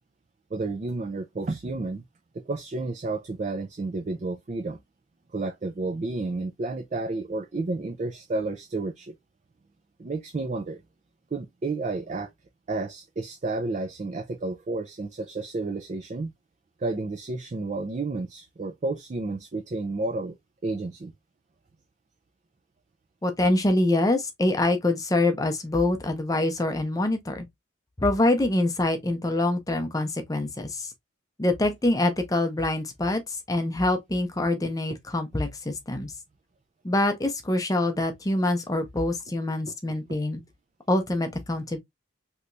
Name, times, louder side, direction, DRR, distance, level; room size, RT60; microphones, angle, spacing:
voice 1, 0.5-2.0 2.5-4.8 5.3-9.1 10.0-10.8 11.3-12.3 12.7-16.3 16.8-20.4 20.6-21.1, right 3 dB, 35° right, 0.4 m, -31 dB
voice 2, 23.2-27.5 28.0-30.9 31.4-36.1 36.8-40.4 40.9-41.8, left 2 dB, 15° left, 0.6 m, -25 dB
3.3 x 2.9 x 2.6 m
head